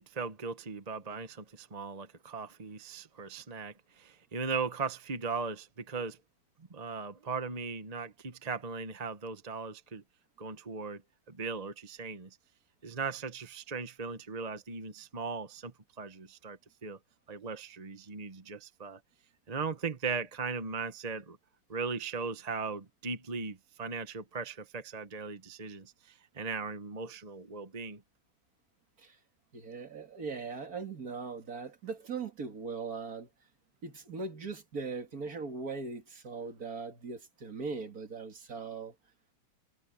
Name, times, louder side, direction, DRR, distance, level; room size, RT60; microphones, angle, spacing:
voice 1, 0.0-6.2 6.7-10.0 10.4-11.0 11.3-12.3 12.8-17.0 17.3-19.0 19.5-21.4 21.7-28.0, right 5 dB, 25° right, 0.9 m, -38 dB
voice 2, 29.5-33.3 33.8-38.9, right 4 dB, 45° right, 2.4 m, -40 dB
omnidirectional pair, 2.2 m